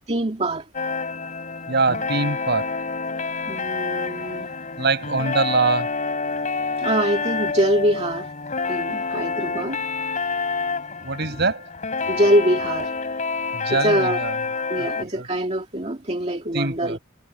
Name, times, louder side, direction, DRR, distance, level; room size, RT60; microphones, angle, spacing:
voice 1, 0.1-0.7 1.9-2.0 3.5-4.5 6.8-8.3 8.7-9.8 11.2-11.4 12.1-12.9 13.7-14.2 14.7-17.0, right 1 dB, 30° right, 2.2 m, -23 dB
sound 1, 0.7-15.0, left 4 dB, 40° left, 4.0 m, -28 dB
voice 2, 1.7-2.7 4.8-5.9 11.0-11.7 13.5-14.4 14.8-15.3 16.5-17.0, right 3 dB, 55° right, 6.1 m, -24 dB
head